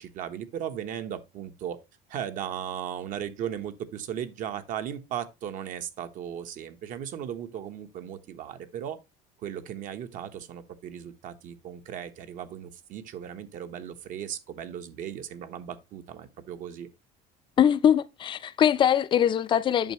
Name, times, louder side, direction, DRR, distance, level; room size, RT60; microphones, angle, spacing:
voice 1, 0.0-1.8 2.1-9.0 9.4-16.9, right 9 dB, 55° right, 1.1 m, -37 dB
voice 2, 17.6-19.9, left 9 dB, 30° left, 0.5 m, -22 dB
9.0 x 6.6 x 3.0 m
cardioid pair, 160°, 17 cm